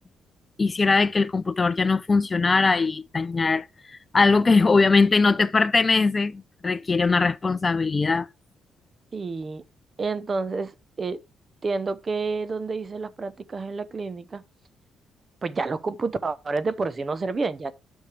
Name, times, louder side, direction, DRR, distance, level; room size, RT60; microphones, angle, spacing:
voice 1, 0.6-8.3, left 4 dB, 30° left, 0.5 m, -21 dB
voice 2, 9.1-9.6 10.0-10.7 11.0-11.2 11.6-14.4 15.4-17.7, right 4 dB, 35° right, 0.8 m, -29 dB
9.7 x 6.4 x 3.3 m
cardioid pair, 90°, 0 cm